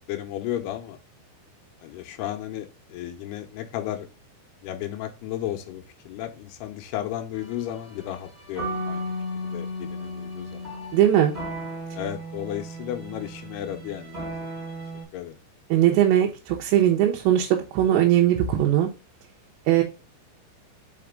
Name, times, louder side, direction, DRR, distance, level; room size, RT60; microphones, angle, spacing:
voice 1, 0.1-1.0 1.8-4.1 4.6-9.1 9.4-10.7 11.9-14.7 15.1-15.4, left 12 dB, 80° left, 7 dB, 2.6 m, -34 dB
sound 1, 7.3-15.0, equal, 15° right, 3.5 m, -35 dB
voice 2, 10.9-11.3 15.7-18.9 19.7-19.8, right 11 dB, 80° right, 1 dB, 3.0 m, -20 dB
5.8 x 5.1 x 3.6 m, 0.29 s
omnidirectional pair, 5.1 m